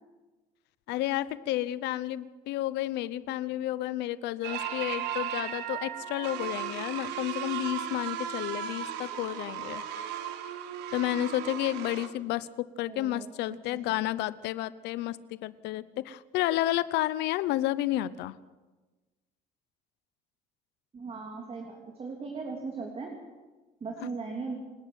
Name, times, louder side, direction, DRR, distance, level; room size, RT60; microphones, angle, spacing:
voice 1, 0.9-9.8 10.9-18.4, left 14 dB, 90° left, 17 dB, 0.9 m, -31 dB
sound 1, 4.4-12.1, right 10 dB, 90° right, 1.8 m, -36 dB
voice 2, 12.9-13.8 20.9-23.1 23.8-24.5, right 4 dB, 35° right, 2 dB, 3.3 m, -38 dB
27.5 x 11.0 x 9.0 m, 1.2 s
cardioid pair, 110°, 17 cm